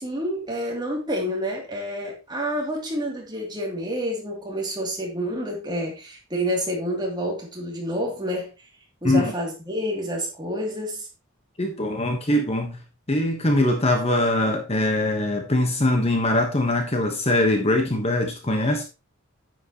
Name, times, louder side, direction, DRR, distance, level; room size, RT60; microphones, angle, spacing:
voice 1, 0.0-8.5 9.0-11.1, equal, 20° right, 2.8 m, -28 dB
voice 2, 11.6-12.8 13.1-18.8, left 1 dB, 30° left, 1.2 m, -22 dB
9.9 x 7.7 x 3.0 m
head